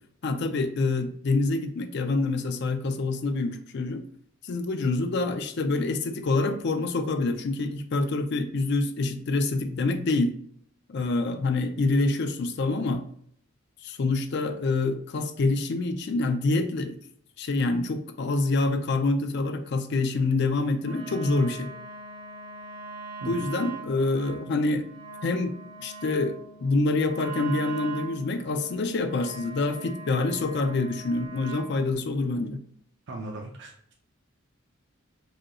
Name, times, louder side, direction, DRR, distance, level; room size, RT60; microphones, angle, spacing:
voice 1, 0.2-4.0 4.4-10.3 10.9-13.0 13.8-17.0 17.4-21.7 23.3-24.9 25.2-32.6, left 3 dB, 55° left, 8 dB, 0.4 m, -26 dB
Wind instrument woodwind instrument, 20.8-31.8, right 4 dB, 90° right, 1.3 m, -41 dB
voice 2, 20.9-21.2 23.2-23.4 33.1-33.9, right 2 dB, 55° right, 1 dB, 0.5 m, -38 dB
4.9 x 3.0 x 2.3 m, 0.65 s
head